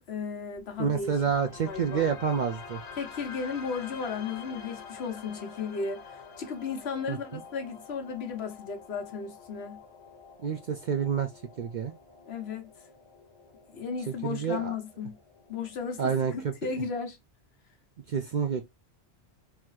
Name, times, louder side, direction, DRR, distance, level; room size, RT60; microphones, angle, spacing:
voice 1, 0.1-1.1 1.6-2.1 3.0-9.8 12.3-12.7 13.7-15.2 15.5-17.2, left 5 dB, 65° left, 1.1 m, -35 dB
sound 1, 0.6-16.6, left 5 dB, 90° left, 1.3 m, -48 dB
voice 2, 0.8-2.8 7.1-7.4 10.4-11.3 11.6-11.9 14.1-14.8 16.0-16.5 18.1-18.7, right 7 dB, 60° right, 0.5 m, -28 dB
3.7 x 2.8 x 3.1 m
omnidirectional pair, 1.2 m